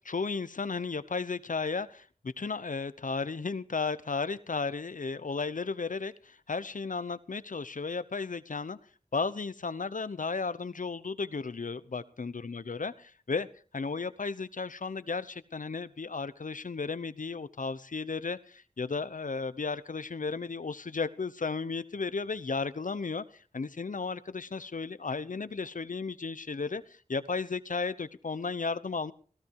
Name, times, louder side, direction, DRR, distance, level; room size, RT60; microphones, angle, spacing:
voice 1, 0.0-8.8 9.1-12.9 13.3-13.5 13.7-29.1, left 4 dB, 85° left, 15 dB, 0.9 m, -34 dB
17.5 x 15.5 x 4.8 m, 0.42 s
wide cardioid pair, 45°, 13 cm